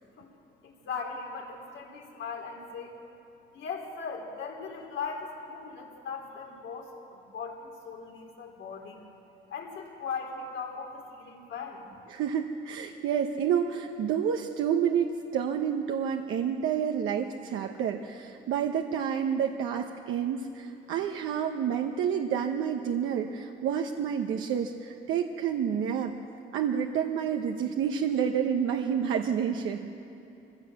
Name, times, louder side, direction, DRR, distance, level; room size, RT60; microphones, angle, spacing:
voice 1, 0.6-2.9 3.5-9.0 9.5-11.9, left 5 dB, 75° left, 1 dB, 3.8 m, -39 dB
voice 2, 12.1-26.1 26.5-29.9, right 8 dB, 85° right, 3 dB, 1.0 m, -29 dB
23.0 x 16.0 x 7.6 m, 2.8 s
cardioid pair, 90°, 20 cm